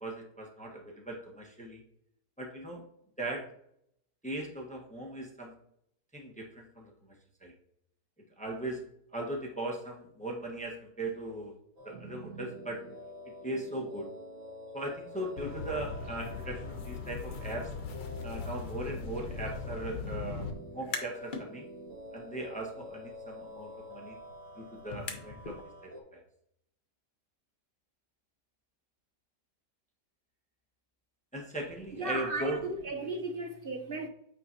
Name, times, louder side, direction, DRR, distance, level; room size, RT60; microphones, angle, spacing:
voice 1, 0.0-1.8 2.4-2.8 3.2-3.4 4.2-5.5 6.1-7.1 7.4-7.5 8.4-8.8 9.1-11.5 11.8-12.8 13.4-14.1 14.7-17.7 18.2-21.7 22.1-24.2 24.6-26.2 31.3-32.6, right 1 dB, 5° left, 0.9 m, -39 dB
sound 1, 11.8-26.0, equal, 80° right, 2.7 m, -47 dB
sound 2, 15.4-20.5, left 5 dB, 80° left, 1.4 m, -39 dB
sound 3, 20.6-21.5 21.9-25.6, left 4 dB, 40° left, 0.7 m, -44 dB
voice 2, 32.0-34.1, right 2 dB, 50° right, 0.6 m, -35 dB
8.7 x 5.0 x 2.8 m
omnidirectional pair, 1.9 m